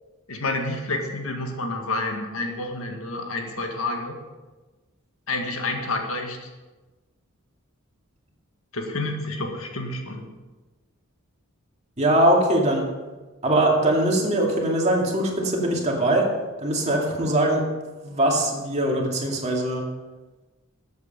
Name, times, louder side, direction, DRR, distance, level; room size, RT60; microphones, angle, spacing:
voice 1, 0.3-4.2 5.3-6.5 8.7-10.3, left 2 dB, 75° left, 3 dB, 1.8 m, -29 dB
voice 2, 12.0-12.9 13.4-16.3 16.6-17.6 18.0-19.8, right 1 dB, 30° right, 0 dB, 2.3 m, -21 dB
13.5 x 8.3 x 5.4 m, 1.2 s
head